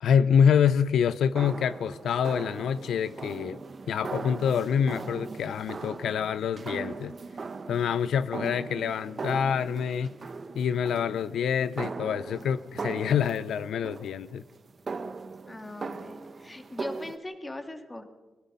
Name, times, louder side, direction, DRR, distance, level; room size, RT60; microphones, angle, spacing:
voice 1, 0.0-3.6 3.9-7.1 7.7-10.1 10.5-14.4, left 7 dB, 90° left, 16 dB, 0.6 m, -26 dB
sound 1, 1.0-17.2, right 4 dB, 35° right, 1.0 m, -39 dB
voice 2, 15.5-18.0, left 1 dB, 15° left, 7 dB, 2.1 m, -40 dB
22.5 x 21.0 x 5.5 m, 1.2 s
wide cardioid pair, 160°, 0 cm